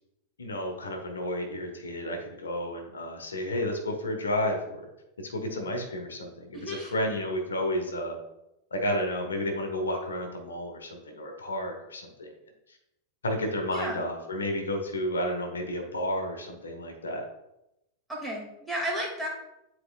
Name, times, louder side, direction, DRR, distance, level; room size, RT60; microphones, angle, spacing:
voice 1, 0.4-4.8 5.2-8.2 8.7-12.3 13.2-17.2, left 1 dB, 70° left, 3 dB, 1.2 m, -31 dB
voice 2, 6.5-6.9 13.7-14.0 18.1-19.3, equal, 5° right, -3 dB, 2.2 m, -33 dB
9.9 x 4.4 x 2.4 m, 0.87 s
figure-of-eight pair, 90°, 0 cm